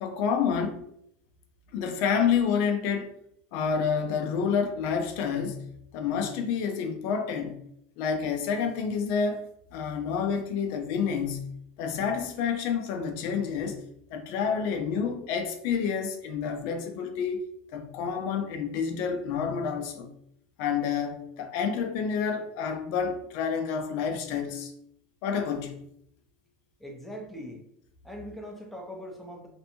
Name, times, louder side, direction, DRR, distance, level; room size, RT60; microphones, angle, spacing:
voice 1, 0.0-0.8 1.7-3.1 3.5-5.7 5.9-7.6 8.0-9.4 9.7-11.5 11.8-13.8 14.1-17.4 17.7-20.1 20.6-24.7 25.2-25.8, left 6 dB, 60° left, 0.5 m, -29 dB
voice 2, 26.8-27.6 28.0-29.5, equal, 5° left, 0.6 m, -41 dB
2.6 x 2.2 x 2.8 m
supercardioid pair, 140°, 5 cm